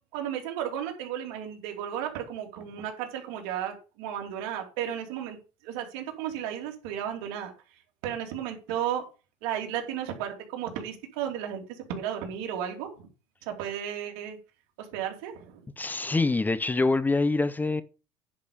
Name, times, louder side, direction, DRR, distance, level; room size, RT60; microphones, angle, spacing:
voice 1, 0.1-5.4 5.6-9.0 9.4-13.1 13.4-14.4 14.8-15.6, right 10 dB, 85° right, 2.9 m, -34 dB
voice 2, 15.8-17.8, left 3 dB, 15° left, 0.6 m, -25 dB
10.5 x 5.3 x 6.6 m
cardioid pair, 120°, 14 cm